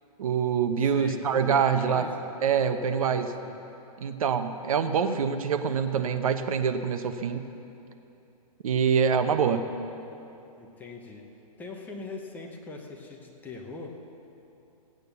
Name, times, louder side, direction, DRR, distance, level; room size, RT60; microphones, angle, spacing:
voice 1, 0.2-2.1 2.4-3.3 4.0-7.5 8.6-9.7, right 7 dB, 60° right, 8 dB, 0.9 m, -25 dB
voice 2, 0.8-2.1 2.9-3.6 10.6-11.2 11.6-13.9, left 3 dB, 10° left, 1 dB, 0.9 m, -42 dB
16.0 x 8.9 x 6.9 m, 2.9 s
hypercardioid pair, 155°, 20 cm